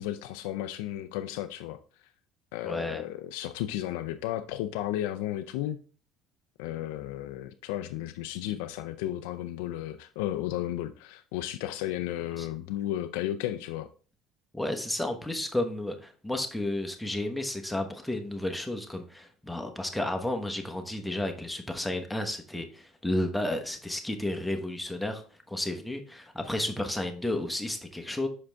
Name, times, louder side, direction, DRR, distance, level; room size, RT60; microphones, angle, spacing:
voice 1, 0.0-1.8 2.5-5.8 6.6-13.9, left 13 dB, 90° left, 0.4 m, -33 dB
voice 2, 2.6-3.0 12.4-12.5 14.5-28.3, left 1 dB, 5° left, 1.1 m, -32 dB
6.2 x 5.0 x 3.5 m
supercardioid pair, 105°, 0 cm